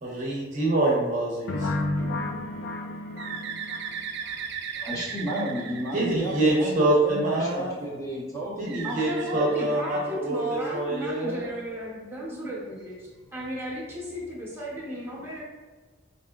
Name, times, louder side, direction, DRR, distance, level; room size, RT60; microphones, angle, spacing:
voice 1, 0.0-1.7 5.9-7.9 8.6-11.5, right 2 dB, 40° right, -4 dB, 0.8 m, -26 dB
sound 1, 1.5-4.3, left 2 dB, 55° left, 0.4 m, -31 dB
Bird, 3.2-6.9 8.6-10.4, right 7 dB, 60° right, 0.3 m, -37 dB
voice 2, 4.8-8.9 9.2-9.5, right 1 dB, 15° left, -6 dB, 0.9 m, -32 dB
voice 3, 8.8-13.0 13.3-15.4, equal, 10° right, -6 dB, 0.9 m, -34 dB
4.8 x 2.9 x 2.3 m, 1.4 s
head